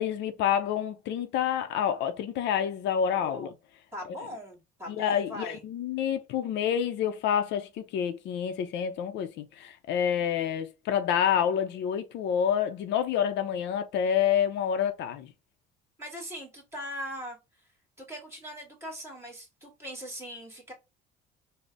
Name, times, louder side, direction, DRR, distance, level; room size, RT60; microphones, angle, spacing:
voice 1, 0.0-3.5 5.0-15.3, left 8 dB, 65° left, 0.5 m, -28 dB
voice 2, 3.2-3.5 3.9-5.6 16.0-17.7 18.0-20.7, equal, 15° right, 2.2 m, -40 dB
3.8 x 2.0 x 3.3 m
cardioid pair, 100°, 19 cm